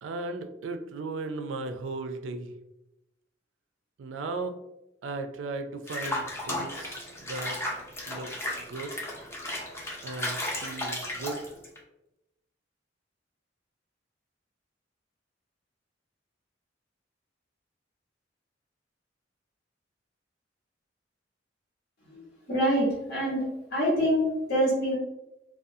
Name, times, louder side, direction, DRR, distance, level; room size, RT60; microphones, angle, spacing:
voice 1, 0.0-2.5 4.0-4.5 5.0-7.6 8.1-8.3 8.6-9.0 10.0-11.5, right 3 dB, 80° right, 7 dB, 0.3 m, -36 dB
Water / Bathtub (filling or washing), 5.9-11.8, left 1 dB, 15° left, 0.5 m, -34 dB
voice 2, 22.5-23.4 23.7-24.9, equal, 60° left, -5 dB, 1.1 m, -25 dB
2.4 x 2.2 x 2.6 m, 0.91 s
head